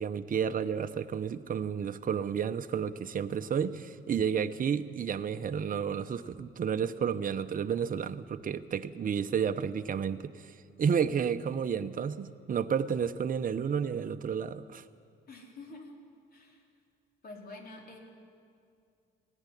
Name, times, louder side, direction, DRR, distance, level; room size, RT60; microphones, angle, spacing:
voice 1, 0.0-14.8, right 7 dB, 45° right, 9 dB, 0.9 m, -31 dB
voice 2, 15.3-16.6 17.2-18.0, left 2 dB, 50° left, 0 dB, 4.1 m, -48 dB
18.5 x 14.5 x 10.0 m, 2.4 s
cardioid pair, 90°, 20 cm